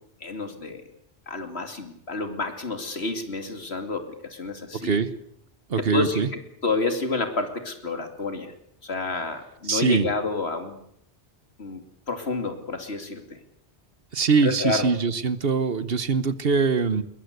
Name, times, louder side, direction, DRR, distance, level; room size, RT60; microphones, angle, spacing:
voice 1, 0.2-0.8 1.3-5.0 5.8-8.5 8.8-10.8 11.6-11.8 12.1-13.2 14.4-14.9, left 3 dB, 70° left, 7 dB, 2.9 m, -29 dB
voice 2, 5.7-6.3 9.7-10.1 14.1-17.0, right 5 dB, 60° right, 14 dB, 1.3 m, -22 dB
21.5 x 21.5 x 8.0 m, 0.70 s
omnidirectional pair, 1.1 m